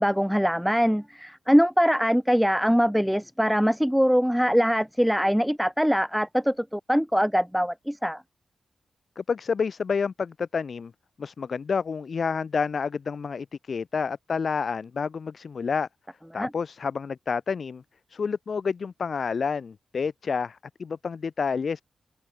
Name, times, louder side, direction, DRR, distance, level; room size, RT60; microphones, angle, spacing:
voice 1, 0.0-8.2 16.3-16.5, equal, ahead, 2.2 m, -23 dB
voice 2, 9.2-10.9 11.2-15.9 16.3-17.8 18.1-21.8, left 5 dB, 55° left, 2.3 m, -29 dB
wide cardioid pair, 95°, 0 cm